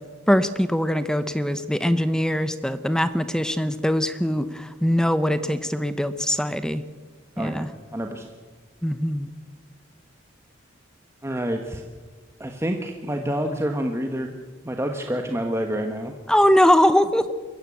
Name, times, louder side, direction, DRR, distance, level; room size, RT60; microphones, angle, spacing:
voice 1, 0.3-6.8 7.4-7.7 8.8-9.3 16.3-17.3, equal, 5° left, 12 dB, 0.8 m, -22 dB
voice 2, 7.4-7.7 7.9-8.3 11.2-11.8 12.4-14.4 14.6-16.1, equal, 15° right, 4 dB, 1.3 m, -28 dB
22.5 x 15.0 x 8.5 m, 1.4 s
head